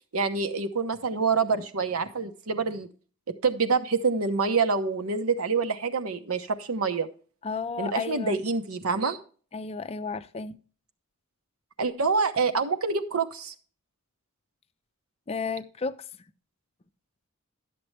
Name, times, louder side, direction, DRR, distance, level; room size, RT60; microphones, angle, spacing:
voice 1, 0.1-2.9 3.4-7.1 7.8-9.2 11.8-13.5, right 4 dB, 75° right, 1.0 m, -26 dB
voice 2, 7.4-8.4 9.5-10.6 15.3-16.0, left 4 dB, 25° left, 0.4 m, -32 dB
12.0 x 7.7 x 3.3 m
head